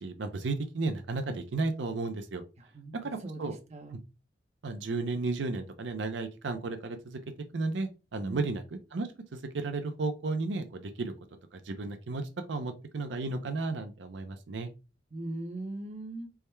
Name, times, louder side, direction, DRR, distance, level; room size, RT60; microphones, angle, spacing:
voice 1, 0.0-2.4 3.0-3.6 4.6-7.2 7.5-8.6 8.9-11.1 11.5-12.2 12.5-14.7, right 3 dB, 80° right, 7 dB, 0.5 m, -33 dB
voice 2, 2.6-3.9 8.2-8.5 15.1-16.3, right 2 dB, 40° right, 4 dB, 0.7 m, -40 dB
3.5 x 2.1 x 4.3 m, 0.30 s
head